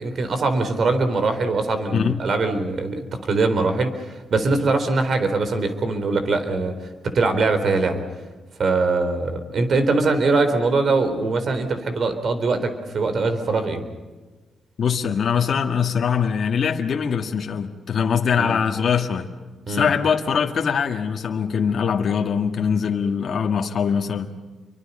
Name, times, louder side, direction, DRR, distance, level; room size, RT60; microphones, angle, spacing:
voice 1, 0.0-6.7 7.0-8.0 8.6-13.8 18.4-18.6 19.7-19.9, right 3 dB, 55° right, 8 dB, 4.0 m, -22 dB
voice 2, 1.9-2.2 14.8-19.3 19.7-24.3, left 7 dB, 55° left, 3 dB, 1.9 m, -22 dB
29.0 x 24.5 x 5.6 m, 1.2 s
cardioid pair, 110°, 0 cm